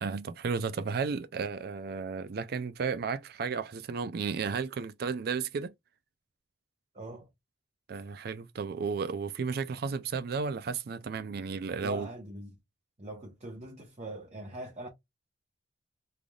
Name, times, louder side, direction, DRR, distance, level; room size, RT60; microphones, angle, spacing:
voice 1, 0.0-5.7 7.9-12.1, right 5 dB, 55° right, 0.4 m, -33 dB
voice 2, 6.9-7.3 7.9-8.0 11.8-12.5 13.0-14.9, right 1 dB, 35° right, 0.9 m, -42 dB
3.7 x 3.3 x 2.3 m
head